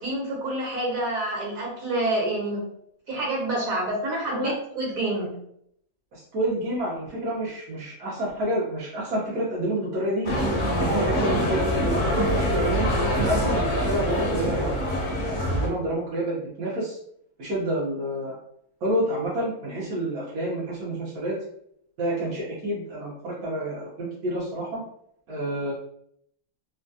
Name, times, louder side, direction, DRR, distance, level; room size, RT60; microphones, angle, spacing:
voice 1, 0.0-2.6 3.1-5.3, right 1 dB, 65° right, -3 dB, 1.5 m, -28 dB
voice 2, 6.1-10.3 10.8-12.9 13.2-17.0 17.4-18.4 18.8-21.4 22.0-24.8 25.3-25.7, right 1 dB, 85° right, -6 dB, 1.4 m, -29 dB
sound 1, 10.2-15.7, equal, 45° left, 0.6 m, -24 dB
3.2 x 2.3 x 2.6 m, 0.71 s
omnidirectional pair, 1.6 m